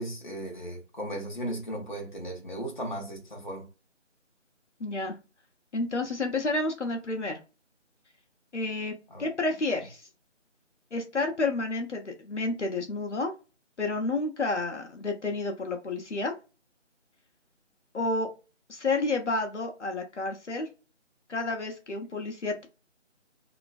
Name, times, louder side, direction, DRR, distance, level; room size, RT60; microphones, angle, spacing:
voice 1, 0.0-3.7 9.1-9.2, right 1 dB, 40° left, 0.9 m, -36 dB
voice 2, 4.8-5.1 5.7-7.4 8.5-8.9 9.2-10.1 10.9-13.3 13.8-16.3 17.9-18.3 18.7-20.7 21.3-22.7, left 2 dB, 65° left, 0.8 m, -30 dB
2.9 x 2.6 x 2.3 m
figure-of-eight pair, 165°, 37 cm